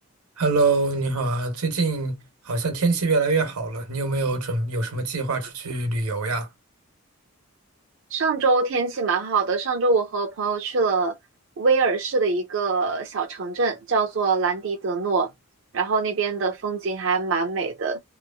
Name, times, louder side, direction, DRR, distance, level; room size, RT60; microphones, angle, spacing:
voice 1, 0.4-6.5, right 3 dB, 90° right, 1.1 m, -24 dB
voice 2, 8.1-11.2 11.6-15.3 15.7-18.0, right 4 dB, 60° right, 0.5 m, -23 dB
2.9 x 2.5 x 2.3 m
head